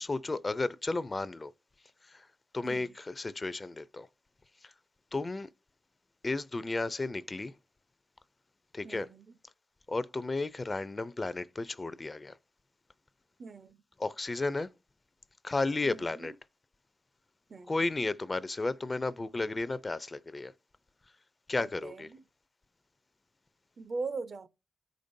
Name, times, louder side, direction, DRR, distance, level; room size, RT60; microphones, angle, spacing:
voice 1, 0.0-1.5 2.0-2.3 2.5-4.1 4.6-4.7 5.1-5.5 6.2-7.5 8.7-9.1 9.9-12.4 14.0-14.7 15.4-16.3 17.7-20.5 21.5-22.1, left 3 dB, 25° left, 0.4 m, -33 dB
voice 2, 2.6-2.9 8.8-9.2 13.4-13.8 15.8-16.3 17.5-17.8 21.6-22.2 23.8-24.5, right 4 dB, 50° right, 0.6 m, -41 dB
13.5 x 5.1 x 2.6 m
wide cardioid pair, 115°, 0 cm